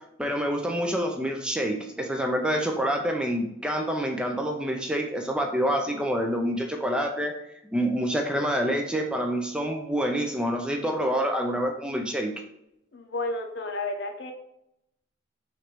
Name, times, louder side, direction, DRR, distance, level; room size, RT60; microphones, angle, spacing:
voice 1, 0.2-7.3 7.7-12.3, equal, 5° right, 2 dB, 0.3 m, -27 dB
voice 2, 12.9-14.3, left 2 dB, 65° left, 5 dB, 0.6 m, -32 dB
3.1 x 2.5 x 4.4 m, 0.80 s
head